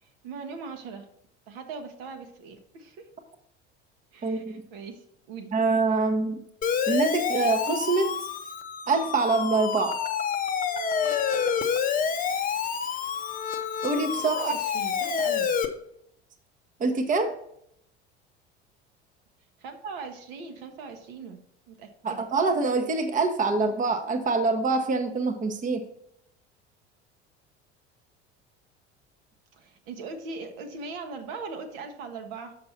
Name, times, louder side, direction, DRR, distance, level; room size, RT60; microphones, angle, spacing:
voice 1, 0.0-1.1 1.5-3.1 4.1-5.5 14.2-15.5 19.6-22.3 29.5-32.6, right 4 dB, 55° right, 5 dB, 1.1 m, -40 dB
voice 2, 4.2-4.6 5.5-6.4 6.9-8.1 8.9-10.0 13.8-14.5 16.8-17.3 22.0-25.8, right 3 dB, 25° right, 6 dB, 0.9 m, -25 dB
Siren, 6.6-15.7, left 7 dB, 25° left, 0.7 m, -28 dB
6.6 x 5.8 x 4.1 m, 0.72 s
figure-of-eight pair, 65°, 35 cm